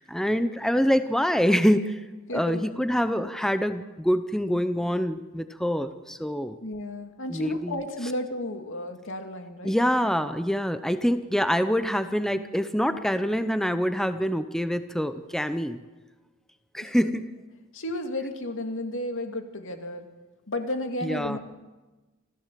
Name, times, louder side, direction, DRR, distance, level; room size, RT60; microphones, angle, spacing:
voice 1, 0.0-2.0 2.3-6.5 7.3-7.8 9.6-15.8 16.7-17.3 21.0-21.4, equal, ahead, 10 dB, 0.8 m, -25 dB
voice 2, 2.3-2.6 6.6-9.8 16.8-17.1 17.7-20.1 20.5-21.4, left 1 dB, 65° left, 5 dB, 2.5 m, -33 dB
27.0 x 15.5 x 7.6 m, 1.2 s
head